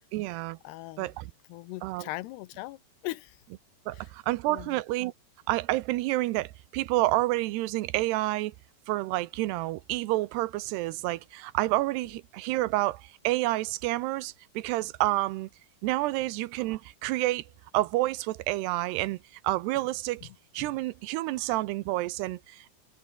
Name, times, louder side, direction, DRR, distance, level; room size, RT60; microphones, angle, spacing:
voice 1, 0.1-0.6 1.0-1.3 1.8-2.1 3.9-5.1 5.5-8.5 8.9-15.5 15.8-17.4 17.7-19.2 19.4-20.3 20.5-22.7, right 18 dB, 80° right, 2.8 m, -29 dB
voice 2, 0.6-1.1 1.5-3.4 3.9-4.1 4.5-4.8 20.2-20.3 20.6-20.7, left 18 dB, 80° left, 2.8 m, -40 dB
omnidirectional pair, 4.8 m